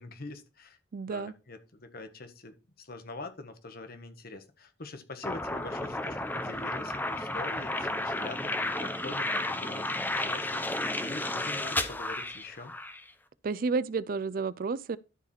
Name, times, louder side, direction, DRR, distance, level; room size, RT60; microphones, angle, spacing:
voice 1, 0.0-0.8 1.1-12.7, left 2 dB, 50° left, 1.5 m, -44 dB
voice 2, 0.9-1.3 13.4-15.0, right 4 dB, 50° right, 0.4 m, -31 dB
sound 1, 5.2-13.0, left 1 dB, 10° left, 0.8 m, -32 dB
12.5 x 4.7 x 4.4 m
head